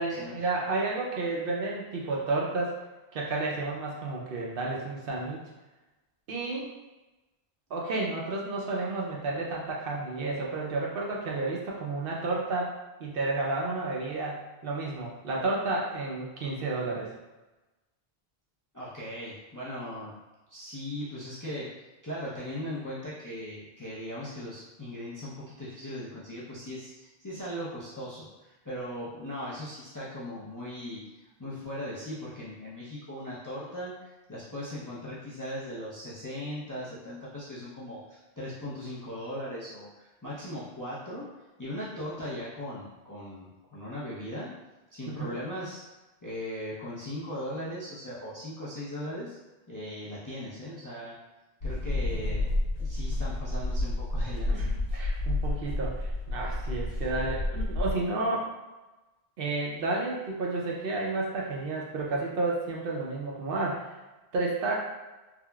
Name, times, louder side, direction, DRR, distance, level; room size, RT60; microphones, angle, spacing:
voice 1, 0.0-2.7 3.1-5.4 6.3-6.7 7.7-12.7 13.0-17.1 45.1-45.4 54.5-58.5 59.4-64.0 64.3-64.8, right 2 dB, 65° right, -3 dB, 0.7 m, -31 dB
voice 2, 18.7-20.1 20.5-21.7 22.0-41.3 41.6-44.5 44.9-45.8 46.2-49.4 49.7-51.1 51.6-52.5 52.8-54.6, left 1 dB, 25° left, -9 dB, 0.4 m, -38 dB
sound 1, 51.6-58.0, left 2 dB, 90° left, 1.1 m, -30 dB
3.5 x 2.0 x 2.2 m, 1.1 s
omnidirectional pair, 1.1 m